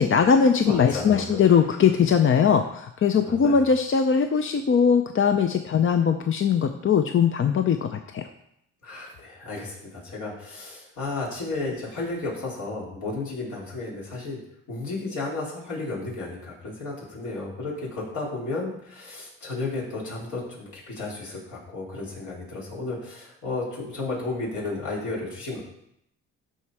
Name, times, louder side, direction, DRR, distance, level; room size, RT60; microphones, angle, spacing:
voice 1, 0.0-8.2, left 6 dB, 45° left, 7 dB, 0.7 m, -20 dB
voice 2, 0.6-1.5 3.1-3.7 8.8-14.4 14.7-25.6, left 3 dB, 75° left, -5 dB, 4.0 m, -33 dB
12.5 x 4.4 x 4.8 m, 0.75 s
cardioid pair, 90°, 30 cm